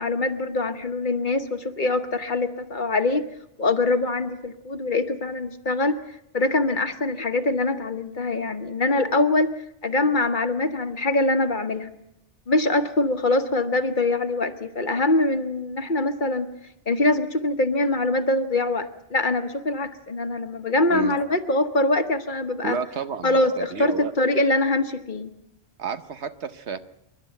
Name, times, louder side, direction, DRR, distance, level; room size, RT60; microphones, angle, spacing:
voice 1, 0.0-3.2 3.6-6.0 6.3-9.5 9.8-11.9 12.5-16.5 16.9-22.8 23.2-25.3, left 2 dB, 45° left, 9 dB, 1.3 m, -23 dB
voice 2, 22.6-24.1 25.8-26.8, right 6 dB, 70° right, 11 dB, 1.3 m, -31 dB
27.5 x 12.0 x 9.0 m, 0.80 s
omnidirectional pair, 1.2 m